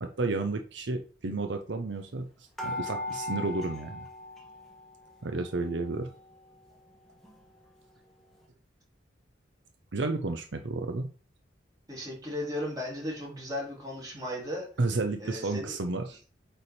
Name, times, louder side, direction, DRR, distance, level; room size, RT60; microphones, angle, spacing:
voice 1, 0.0-2.3 2.6-4.1 5.2-6.1 9.9-11.1 14.8-16.2, right 3 dB, 70° right, 6 dB, 0.7 m, -31 dB
sound 1, 2.6-5.1 5.4-6.4 6.9-7.0 7.2-7.4, left 2 dB, ahead, 1.3 m, -39 dB
voice 2, 11.9-14.7 15.2-15.8, left 1 dB, 20° right, -3 dB, 2.8 m, -36 dB
8.5 x 3.4 x 4.2 m, 0.39 s
head